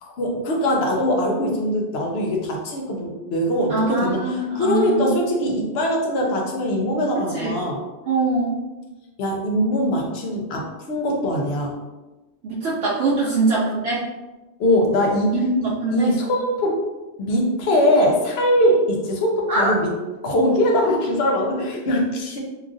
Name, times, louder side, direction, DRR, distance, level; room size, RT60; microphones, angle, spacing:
voice 1, 0.0-7.8 9.2-11.7 13.2-13.3 14.6-15.3 15.9-16.8 17.2-19.9 20.2-22.4, equal, 70° left, 0 dB, 0.8 m, -21 dB
voice 2, 3.7-5.1 7.2-7.5 8.1-8.6 12.4-14.1 15.3-16.1 19.5-19.7, right 3 dB, 75° right, -6 dB, 0.8 m, -22 dB
2.9 x 2.3 x 2.5 m, 1.1 s
omnidirectional pair, 1.2 m